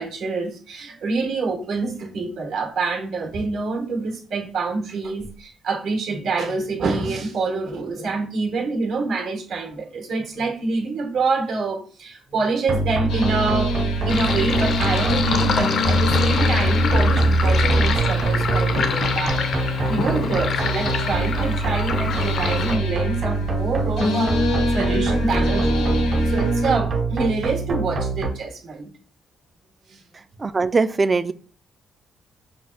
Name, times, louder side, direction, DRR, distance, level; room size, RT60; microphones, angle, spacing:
voice 1, 0.0-19.4 19.9-24.4 24.7-26.0 26.2-28.9 29.9-30.0, right 4 dB, 75° right, 1.2 m, -26 dB
sound 1, 12.7-28.3, right 2 dB, 50° right, 1.4 m, -23 dB
sound 2, 13.1-26.8, left 2 dB, 85° left, 0.7 m, -28 dB
Sink (filling or washing), 14.1-22.8, left 6 dB, 60° left, 0.4 m, -27 dB
voice 2, 30.4-31.3, right 4 dB, 30° right, 0.3 m, -20 dB
5.7 x 2.3 x 3.2 m
cardioid pair, 90°, 0 cm